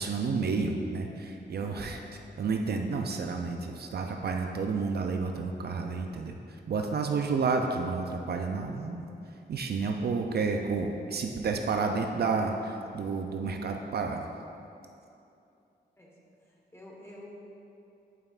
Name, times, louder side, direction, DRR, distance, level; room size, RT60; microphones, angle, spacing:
voice 1, 0.0-2.0 2.4-6.4 6.7-9.1 9.5-14.2, right 4 dB, 60° right, 3 dB, 0.4 m, -30 dB
voice 2, 1.5-2.0 16.0-16.1 16.5-17.3, left 1 dB, 15° left, -3 dB, 1.2 m, -49 dB
11.0 x 5.5 x 2.4 m, 2.7 s
wide cardioid pair, 135°, 18 cm